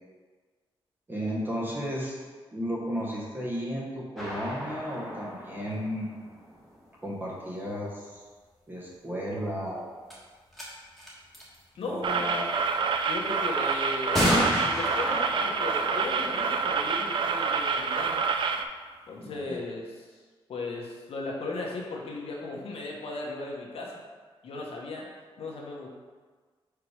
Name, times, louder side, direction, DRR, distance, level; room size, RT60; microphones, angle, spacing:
voice 1, 1.1-2.2 2.5-6.3 7.0-8.2 8.7-9.9 11.8-12.5 19.2-19.6, equal, 20° right, -5 dB, 1.0 m, -34 dB
sound 1, 4.2-6.9 9.5-9.6 10.1-10.2 10.5-10.7 11.0-11.6 12.8-12.9 14.1-17.7, equal, ahead, 1.4 m, -32 dB
voice 2, 11.8-12.3 13.1-18.3 18.5-18.6 19.1-20.2 20.5-23.9 24.4-25.1 25.4-25.9, left 2 dB, 90° left, -1 dB, 1.2 m, -36 dB
sound 2, 12.0-18.6, right 5 dB, 55° right, 0.4 m, -27 dB
4.8 x 4.7 x 4.9 m, 1.4 s
wide cardioid pair, 160°, 10 cm